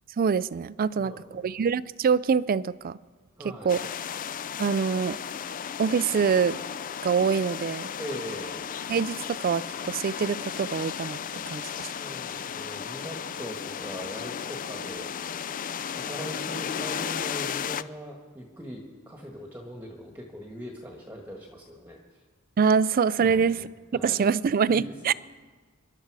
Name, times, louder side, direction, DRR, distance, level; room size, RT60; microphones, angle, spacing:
voice 1, 0.2-3.0 3.4-3.8 4.6-5.2 5.8-6.6 7.0-7.9 8.9-11.2 11.5-11.6 22.6-23.6 24.0-25.1, right 6 dB, 45° right, 19 dB, 0.4 m, -25 dB
voice 2, 0.9-1.5 3.4-3.8 8.0-8.7 11.7-15.1 15.9-22.0 23.2-23.7 23.9-24.3 24.7-25.1, equal, 10° right, 0 dB, 1.4 m, -40 dB
sound 1, 3.7-17.8, left 8 dB, 40° left, 0.4 m, -35 dB
25.5 x 11.5 x 4.8 m, 1.5 s
head